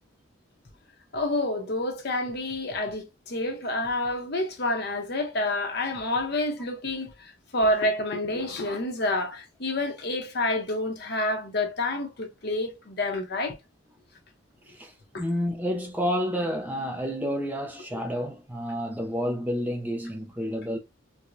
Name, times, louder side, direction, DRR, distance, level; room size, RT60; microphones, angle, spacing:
voice 1, 1.1-13.6 15.1-15.2 17.9-18.0, left 1 dB, 50° left, 0.8 m, -28 dB
voice 2, 14.7-20.8, equal, 10° right, 0.5 m, -30 dB
4.6 x 2.2 x 2.6 m
head